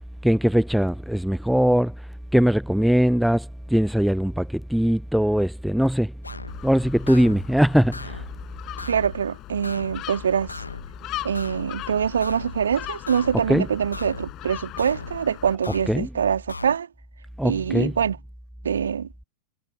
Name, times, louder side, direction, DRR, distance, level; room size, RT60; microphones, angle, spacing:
voice 1, 0.2-1.9 2.3-6.1 6.6-8.2 13.5-13.7 15.9-16.1 17.4-17.9, equal, ahead, 0.5 m, -21 dB
sound 1, 6.2-6.6 7.1-7.5 7.9-8.3 8.8-9.2 9.6-10.1 10.5-10.9 11.4-11.8 12.2-12.6 13.1-13.5 13.9-14.3 14.8-15.2 15.6-16.1 16.5-16.8, left 3 dB, 80° left, 1.5 m, -37 dB
Gull seagull, 6.5-15.5, left 16 dB, 35° left, 7.0 m, -39 dB
voice 2, 8.9-10.5 11.2-16.9 17.4-18.2 18.6-19.1, right 7 dB, 70° right, 3.1 m, -24 dB
figure-of-eight pair, 90°, 0 cm